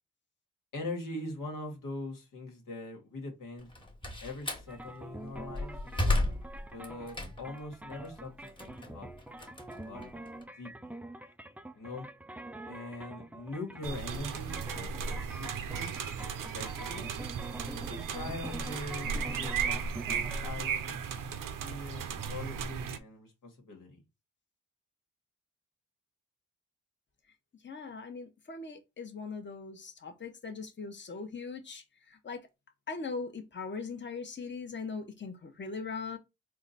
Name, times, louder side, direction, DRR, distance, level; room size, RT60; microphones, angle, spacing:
voice 1, 0.7-3.7 4.2-6.2 6.6-9.1 9.7-10.3 10.6-10.9 11.8-12.1 12.6-15.9 16.4-17.1 17.8-24.0, left 2 dB, 85° left, 1.3 m, -43 dB
Slam, 3.6-4.7 5.3-7.6 8.0-10.4, left 2 dB, 15° left, 1.2 m, -33 dB
sound 1, 4.7-20.5, right 1 dB, 5° right, 0.3 m, -46 dB
sound 2, 13.8-23.0, right 6 dB, 80° right, 0.6 m, -36 dB
voice 2, 27.6-32.4 32.9-36.2, left 4 dB, 35° left, 0.9 m, -40 dB
3.8 x 2.2 x 4.0 m
cardioid pair, 45°, 32 cm